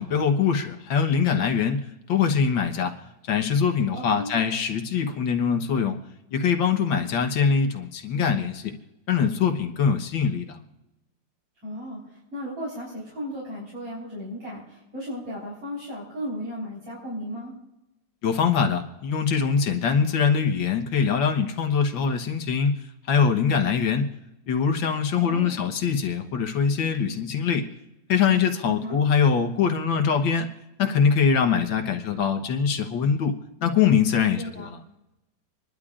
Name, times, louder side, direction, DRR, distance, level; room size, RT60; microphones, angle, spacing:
voice 1, 0.0-1.8 2.1-2.9 3.3-6.0 6.3-8.7 9.1-10.6 18.2-22.8 23.1-24.1 24.5-27.7 28.1-30.5 30.8-34.8, left 6 dB, 90° left, 4 dB, 1.9 m, -23 dB
voice 2, 4.0-4.3 11.6-17.5 25.2-25.6 28.6-29.0 34.4-34.7, equal, 80° right, -7 dB, 4.7 m, -35 dB
27.0 x 11.5 x 2.5 m, 0.95 s
omnidirectional pair, 2.0 m